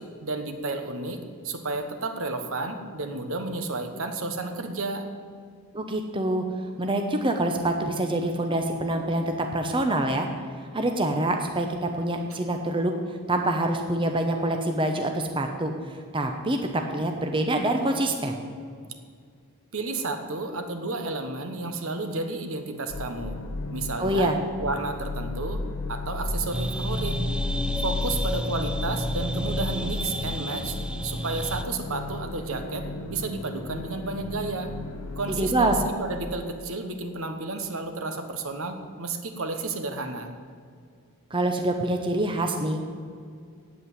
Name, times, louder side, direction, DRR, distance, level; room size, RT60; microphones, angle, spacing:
voice 1, 0.0-5.1 19.7-23.4 23.7-24.3 24.6-25.6 25.9-27.2 27.8-30.8 31.0-34.7 35.2-40.3, right 3 dB, 65° right, 7 dB, 1.2 m, -32 dB
voice 2, 5.7-6.4 6.8-10.3 10.7-12.9 13.3-18.4 24.0-24.4 35.3-35.8 41.3-42.8, right 1 dB, 25° right, 4 dB, 0.8 m, -26 dB
sound 1, 22.9-35.9, left 2 dB, 90° left, 0.9 m, -33 dB
sound 2, 26.5-31.6, right 1 dB, 5° right, 0.3 m, -31 dB
8.6 x 8.3 x 9.2 m, 2.2 s
head